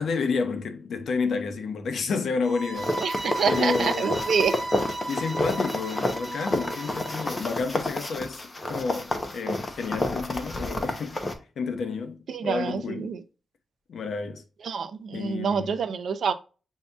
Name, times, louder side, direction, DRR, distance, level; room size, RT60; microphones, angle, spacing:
voice 1, 0.0-4.3 5.0-8.4 8.7-11.2 11.6-13.1 13.9-14.4 15.1-15.8, left 4 dB, 65° left, 0.7 m, -30 dB
sound 1, 2.4-7.4, right 1 dB, 25° right, 0.8 m, -34 dB
sound 2, 2.7-11.3, left 1 dB, 25° left, 0.7 m, -30 dB
voice 2, 3.0-4.5 12.3-13.2 14.6-16.3, right 6 dB, 70° right, 0.5 m, -27 dB
6.9 x 2.7 x 2.2 m
wide cardioid pair, 150°, 0 cm